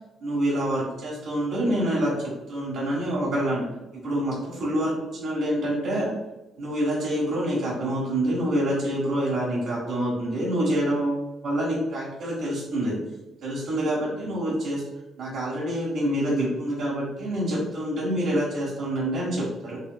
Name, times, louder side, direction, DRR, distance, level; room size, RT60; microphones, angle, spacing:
voice 1, 0.2-3.6 4.0-4.9 5.2-6.1 6.6-12.9 13.4-14.8 15.2-19.8, right 1 dB, 85° right, -7 dB, 1.3 m, -26 dB
5.3 x 3.0 x 2.2 m, 0.98 s
cardioid pair, 90°, 0 cm